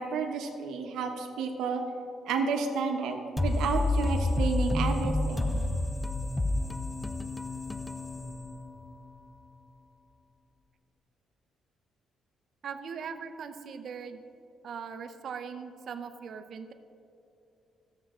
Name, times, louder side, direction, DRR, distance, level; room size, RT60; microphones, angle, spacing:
voice 1, 0.0-1.8 2.3-5.5, right 4 dB, 85° right, 3 dB, 0.9 m, -31 dB
sound 1, 3.4-9.0, left 2 dB, 15° left, 0.4 m, -29 dB
voice 2, 12.6-14.2 14.6-16.7, right 6 dB, 60° right, 9 dB, 0.6 m, -40 dB
13.5 x 7.2 x 3.7 m, 2.7 s
cardioid pair, 90°, 0 cm